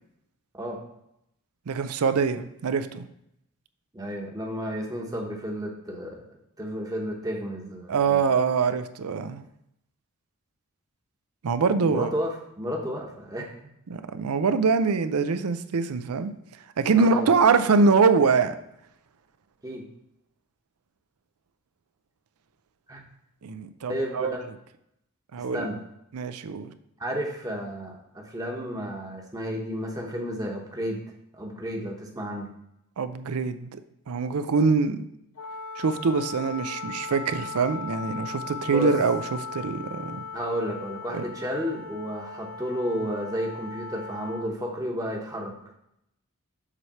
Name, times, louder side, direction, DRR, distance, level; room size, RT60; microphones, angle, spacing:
voice 1, 1.7-3.1 7.9-9.4 11.4-12.1 13.9-16.3 16.8-18.5 23.4-24.4 25.3-25.7 26.1-26.7 33.0-33.8 34.1-35.0 35.8-40.2 41.1-41.3, right 5 dB, 90° right, 11 dB, 0.5 m, -24 dB
voice 2, 3.9-6.2 6.6-8.3 11.8-13.5 16.9-17.3 19.6-19.8 22.9-23.0 23.9-24.3 25.5-25.8 27.0-31.0 31.4-32.5 38.7-38.9 40.3-45.6, equal, 15° right, 0 dB, 1.0 m, -32 dB
Wind instrument woodwind instrument, 35.3-44.5, left 4 dB, 90° left, 0.5 m, -38 dB
7.4 x 3.3 x 5.4 m, 0.80 s
head